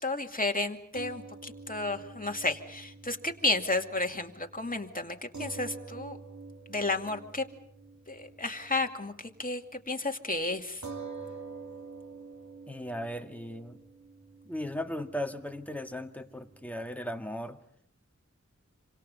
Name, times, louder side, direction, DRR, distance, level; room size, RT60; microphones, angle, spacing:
voice 1, 0.0-6.2 6.7-7.4 8.1-10.8, left 2 dB, 30° left, 3 dB, 2.5 m, -32 dB
sound 1, 0.9-9.5 9.8-9.9 10.8-17.4, right 4 dB, 75° right, 3.1 m, -47 dB
voice 2, 12.7-13.8 14.5-17.6, left 1 dB, 5° left, 5 dB, 1.9 m, -37 dB
27.5 x 26.5 x 5.5 m, 0.67 s
wide cardioid pair, 70°, 30 cm